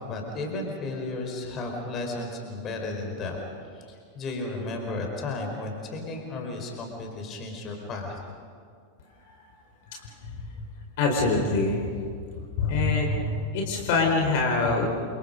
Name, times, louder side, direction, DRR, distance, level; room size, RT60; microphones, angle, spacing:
voice 1, 0.0-3.4 3.7-8.2, left 2 dB, 30° left, 2 dB, 4.8 m, -34 dB
voice 2, 11.0-11.9 12.6-13.3 13.5-14.9, left 3 dB, 50° left, 1 dB, 4.6 m, -24 dB
29.0 x 27.5 x 5.4 m, 2.2 s
figure-of-eight pair, 90°, 0 cm